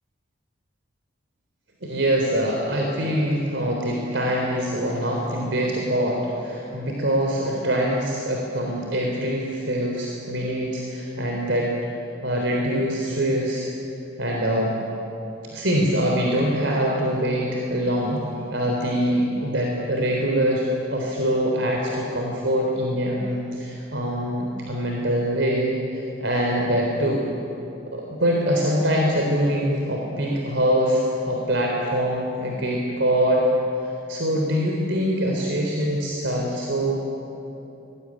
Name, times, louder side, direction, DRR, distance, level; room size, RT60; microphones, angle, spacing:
voice 1, 1.8-11.7 12.2-13.7 14.2-14.7 15.4-18.2 18.5-27.2 27.9-33.5 33.8-37.1, equal, 70° right, -1 dB, 3.8 m, -24 dB
25.0 x 20.5 x 9.9 m, 3.0 s
head